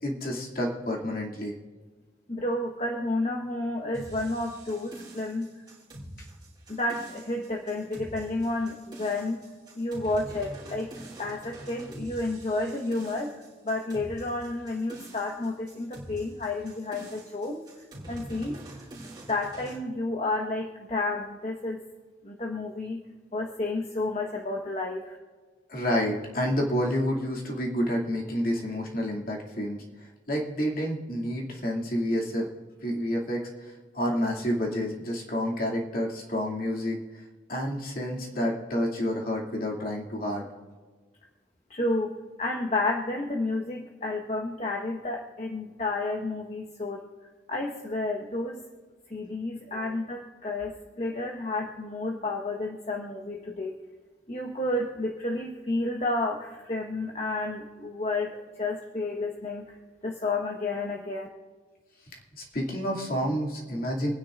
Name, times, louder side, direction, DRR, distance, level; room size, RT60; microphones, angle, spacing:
voice 1, 0.0-1.5 25.7-29.8 30.3-32.5 32.8-37.2 37.5-40.5 49.7-49.8 62.3-64.1, equal, 55° left, -1 dB, 2.5 m, -29 dB
voice 2, 2.3-5.5 6.7-9.4 9.8-10.9 11.2-13.3 13.6-17.6 18.1-18.6 19.3-21.8 22.2-23.0 23.3-25.2 41.7-42.1 42.4-47.0 47.5-48.6 49.1-50.7 51.0-53.7 54.3-59.8 60.0-61.3, left 2 dB, 40° left, -1 dB, 1.2 m, -31 dB
sound 1, 3.9-19.8, right 1 dB, 25° right, 3.3 m, -45 dB
28.0 x 9.9 x 2.5 m, 1.5 s
head